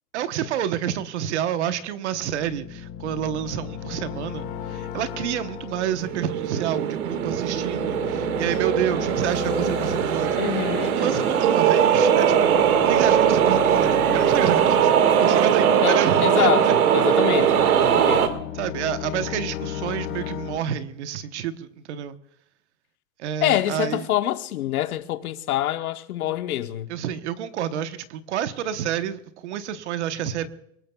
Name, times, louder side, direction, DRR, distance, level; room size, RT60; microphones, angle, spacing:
voice 1, 0.1-10.4 10.8-12.6 12.8-14.9 15.2-16.8 18.5-22.2 23.2-24.1 26.9-30.5, right 10 dB, 55° right, 1.1 m, -29 dB
sound 1, 2.2-16.5 17.1-20.6, left 10 dB, 35° left, 1.4 m, -36 dB
sound 2, 5.8-18.3, right 8 dB, 90° right, 1.9 m, -20 dB
voice 2, 10.4-11.4 15.8-18.2 23.4-26.9, left 13 dB, 85° left, 1.1 m, -26 dB
23.5 x 20.0 x 2.3 m
supercardioid pair, 175°, 42 cm